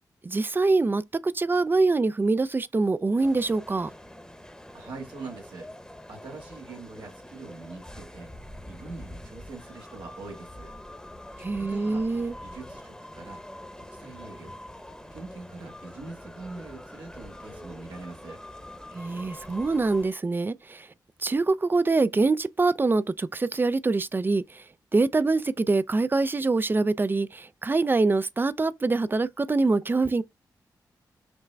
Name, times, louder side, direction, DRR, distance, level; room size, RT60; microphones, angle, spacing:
voice 1, 0.2-3.9 11.4-12.4 18.9-20.9 21.2-24.7 24.9-30.2, right 3 dB, 25° right, 0.4 m, -24 dB
sound 1, 3.2-20.1, left 1 dB, 10° left, 0.9 m, -44 dB
voice 2, 4.7-5.7 6.1-8.3 8.6-10.7 11.6-12.0 12.4-13.4 13.7-14.5 15.1-18.4, right 3 dB, 85° right, 1.6 m, -43 dB
5.8 x 2.1 x 3.3 m
supercardioid pair, 45°, 8 cm